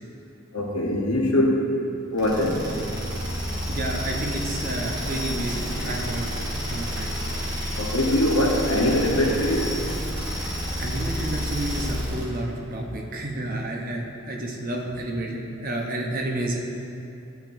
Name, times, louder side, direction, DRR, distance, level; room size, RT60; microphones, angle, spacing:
voice 1, 0.5-1.6 2.1-2.7 7.8-9.7, left 1 dB, 75° left, 0 dB, 0.9 m, -22 dB
sound 1, 2.2-12.4, equal, 15° right, 1.0 m, -29 dB
voice 2, 3.7-6.3 6.7-7.1 10.8-16.6, right 1 dB, 40° right, 0 dB, 0.8 m, -30 dB
11.0 x 5.8 x 2.6 m, 2.7 s
head